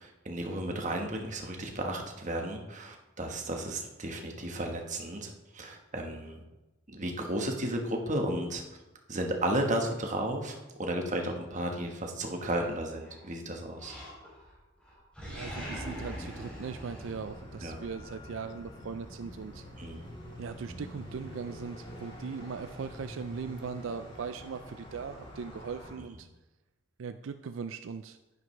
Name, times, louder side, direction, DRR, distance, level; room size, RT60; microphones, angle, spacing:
voice 1, 0.0-6.4 6.9-8.6 9.1-14.0 17.6-17.8 19.8-20.1, right 1 dB, 40° right, 2 dB, 1.3 m, -33 dB
Animal, 12.4-13.3 13.8-14.5 14.8-17.8, equal, 5° left, 3.5 m, -42 dB
voice 2, 15.3-19.6 20.4-26.3 27.0-28.2, right 5 dB, 75° right, 10 dB, 0.4 m, -39 dB
sound 1, 16.4-25.9, equal, 30° left, 3.3 m, -46 dB
11.0 x 10.5 x 3.3 m, 1.1 s
head